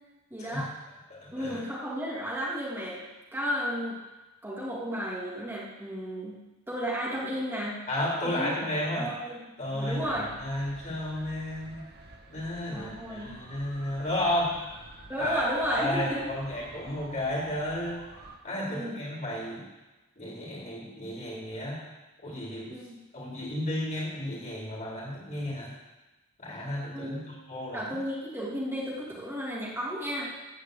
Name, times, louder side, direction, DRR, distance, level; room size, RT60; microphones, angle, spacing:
voice 1, 0.3-0.7 1.3-3.0 3.3-4.0 4.4-6.4 6.7-7.8 8.2-8.5 9.0-9.4 9.7-10.3 12.7-13.3 15.1-16.3 18.7-19.0 22.7-23.0 26.9-27.3 27.7-30.3, equal, 10° right, -6 dB, 2.5 m, -33 dB
voice 2, 1.1-1.6 7.9-9.1 9.6-11.8 12.3-14.6 15.2-18.1 18.4-19.6 20.2-21.8 22.2-22.7 23.1-25.7 26.4-27.8, left 1 dB, 40° left, -6 dB, 4.2 m, -33 dB
sound 1, 9.9-18.4, right 2 dB, 50° right, 1.3 m, -49 dB
14.5 x 5.1 x 8.3 m, 1.1 s
head